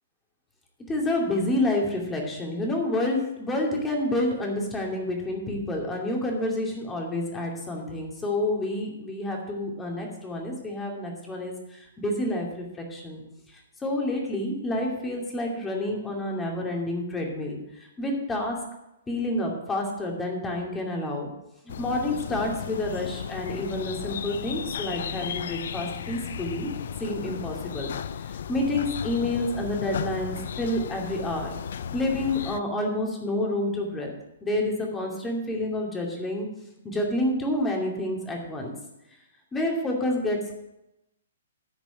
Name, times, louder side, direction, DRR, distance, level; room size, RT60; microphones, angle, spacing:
voice 1, 0.9-13.2 13.8-18.6 19.1-21.3 21.8-26.7 27.0-27.9 28.5-31.5 31.9-34.1 34.4-36.5 36.8-38.7 39.5-40.5, left 1 dB, 10° left, 0 dB, 2.5 m, -29 dB
sound 1, 21.7-32.6, left 8 dB, 55° left, 0.5 m, -35 dB
10.5 x 6.1 x 7.6 m, 0.90 s
figure-of-eight pair, 120°, 0 cm